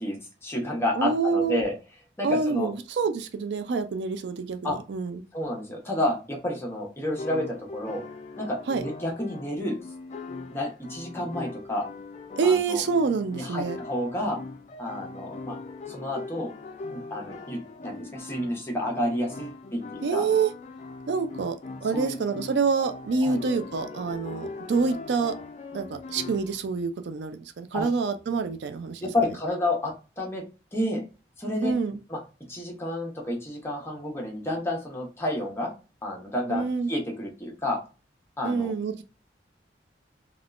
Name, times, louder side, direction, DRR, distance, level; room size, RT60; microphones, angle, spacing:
voice 1, 0.0-1.7 2.2-2.7 4.6-4.8 5.3-8.0 8.4-9.8 10.5-11.8 12.4-12.8 13.4-14.4 14.8-15.6 15.9-16.5 16.9-20.3 21.9-22.2 23.2-23.4 27.7-27.9 29.0-30.4 30.7-31.0 31.4-31.7 32.1-32.2 32.5-35.7 36.0-37.8 38.4-38.7, left 1 dB, 15° left, -1 dB, 0.9 m, -30 dB
voice 2, 1.0-1.6 2.2-5.2 8.7-8.8 12.4-13.8 20.0-20.5 21.1-21.6 21.8-25.3 25.7-29.1 31.6-32.0 36.5-36.9 38.4-39.0, right 5 dB, 75° right, 8 dB, 0.4 m, -27 dB
sound 1, 7.2-26.6, left 3 dB, 40° left, 0.4 m, -41 dB
3.4 x 2.3 x 2.4 m, 0.32 s
head